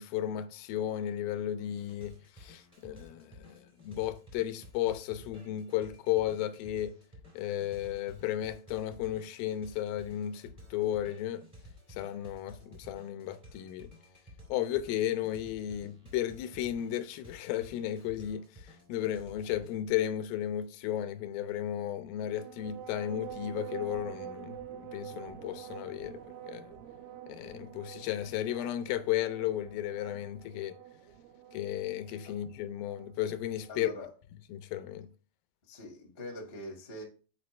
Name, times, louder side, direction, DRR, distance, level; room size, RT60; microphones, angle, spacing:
voice 1, 0.0-7.0 7.3-11.5 11.9-13.9 14.5-18.4 18.9-26.2 26.5-26.7 27.3-30.8 31.5-33.9 34.5-35.1, left 12 dB, 85° left, 2.3 m, -34 dB
sound 1, 1.7-19.9, left 1 dB, 20° right, 1.1 m, -54 dB
sound 2, 22.2-34.1, right 10 dB, 80° right, 2.1 m, -47 dB
voice 2, 33.7-34.1 35.7-37.0, left 1 dB, 45° left, 0.7 m, -43 dB
6.8 x 4.7 x 3.1 m
omnidirectional pair, 4.2 m